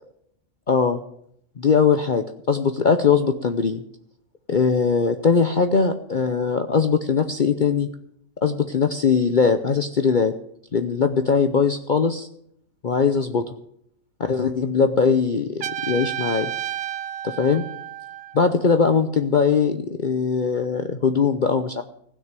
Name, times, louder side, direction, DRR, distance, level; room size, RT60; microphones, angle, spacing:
voice 1, 0.7-1.0 1.6-3.8 4.5-7.9 8.4-10.3 10.7-12.3 12.8-13.5 14.3-16.5 17.2-17.7 18.3-21.8, left 5 dB, 45° left, 8 dB, 0.7 m, -20 dB
Trumpet, 15.6-18.5, right 12 dB, 55° right, 0.8 m, -31 dB
16.0 x 6.4 x 8.9 m, 0.70 s
omnidirectional pair, 1.4 m